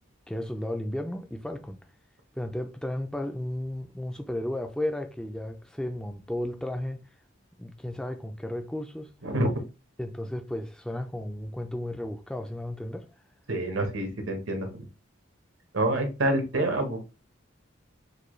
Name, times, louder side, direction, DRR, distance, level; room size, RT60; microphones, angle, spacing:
voice 1, 0.3-1.8 2.4-7.0 7.6-9.1 10.0-13.1, left 1 dB, 5° left, 0.3 m, -34 dB
voice 2, 13.5-14.8 15.7-17.0, right 1 dB, 80° right, 1.1 m, -27 dB
6.6 x 2.3 x 3.1 m
head